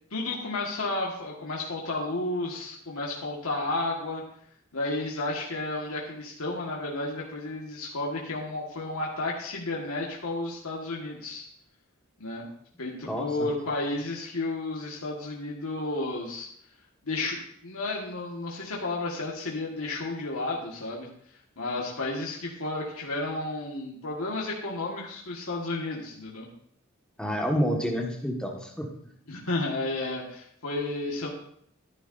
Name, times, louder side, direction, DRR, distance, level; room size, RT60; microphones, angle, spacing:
voice 1, 0.1-4.2 4.7-11.5 12.2-12.4 12.8-16.5 17.0-21.1 21.6-26.5 29.3-31.3, left 2 dB, 85° left, -2 dB, 1.6 m, -32 dB
voice 2, 13.0-13.5 27.2-28.9, equal, 5° left, 0 dB, 1.6 m, -29 dB
14.5 x 10.5 x 2.6 m, 0.66 s
head